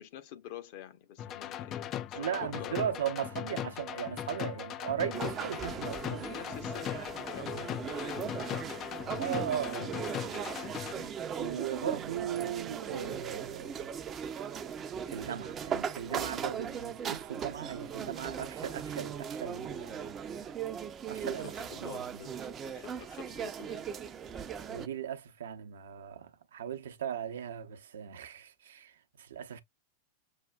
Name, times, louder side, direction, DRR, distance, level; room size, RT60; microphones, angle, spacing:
voice 1, 0.0-2.9 5.6-9.1 9.6-9.9 10.9-11.2 21.4-22.4 22.6-23.9, left 11 dB, 50° left, 0.8 m, -48 dB
sound 1, 1.2-10.9, left 11 dB, 35° left, 0.3 m, -39 dB
voice 2, 2.1-6.3 7.4-7.7 9.1-10.0 11.4-13.9 15.1-20.1 21.1-22.2 24.7-29.6, right 9 dB, 65° right, 0.6 m, -37 dB
sound 2, 5.1-24.9, right 7 dB, 25° right, 0.5 m, -38 dB
6.3 x 2.2 x 2.3 m
figure-of-eight pair, 90°, 0 cm